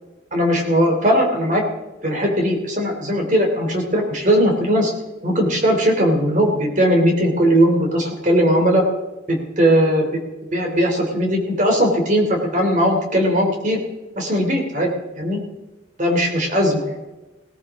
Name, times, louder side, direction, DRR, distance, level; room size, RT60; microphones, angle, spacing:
voice 1, 0.3-1.6 2.0-4.9 5.2-8.8 9.3-10.2 10.5-13.8 14.2-14.9 15.2-15.4 16.0-17.1, equal, 40° right, 2 dB, 3.1 m, -18 dB
18.0 x 14.5 x 3.7 m, 1.1 s
head